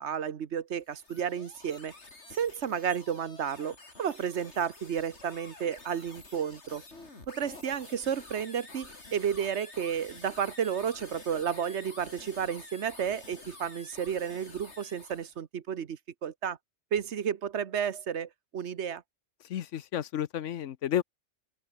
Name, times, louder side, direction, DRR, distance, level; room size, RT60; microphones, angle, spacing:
voice 1, 0.0-1.9 2.3-6.8 7.3-16.6 16.9-19.0, right 8 dB, 70° right, 1.3 m, -32 dB
sound 1, 0.7-15.4, left 2 dB, 70° left, 4.1 m, -49 dB
voice 2, 19.4-21.0, left 10 dB, 85° left, 1.1 m, -31 dB
open air
omnidirectional pair, 1.2 m